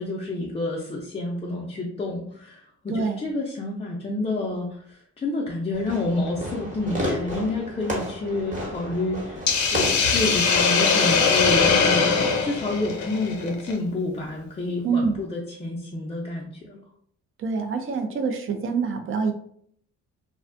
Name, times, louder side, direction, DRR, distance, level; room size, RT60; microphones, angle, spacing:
voice 1, 0.0-16.8, left 2 dB, 20° left, -3 dB, 0.4 m, -29 dB
voice 2, 2.9-3.3 14.8-15.2 17.4-19.3, right 5 dB, 45° right, 6 dB, 0.5 m, -26 dB
Fireworks, 5.7-10.9, equal, 25° right, 1.0 m, -32 dB
Hiss, 9.5-13.7, left 5 dB, 70° left, 0.6 m, -21 dB
2.5 x 2.1 x 2.4 m, 0.64 s
cardioid pair, 90°, 30 cm